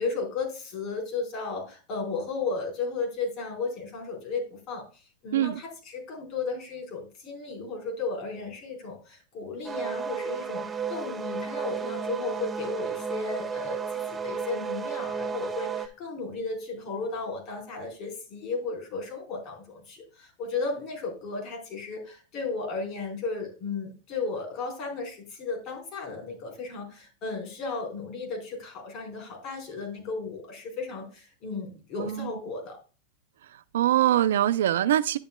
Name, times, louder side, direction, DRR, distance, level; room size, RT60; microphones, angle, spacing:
voice 1, 0.0-4.9 5.2-13.8 14.1-32.8, left 4 dB, 45° left, 4.1 m, -34 dB
sound 1, 9.6-15.9, right 6 dB, 15° right, 0.8 m, -33 dB
voice 2, 32.0-32.3 33.7-35.2, right 12 dB, 85° right, 0.5 m, -23 dB
10.5 x 7.9 x 2.2 m
supercardioid pair, 125°, 0 cm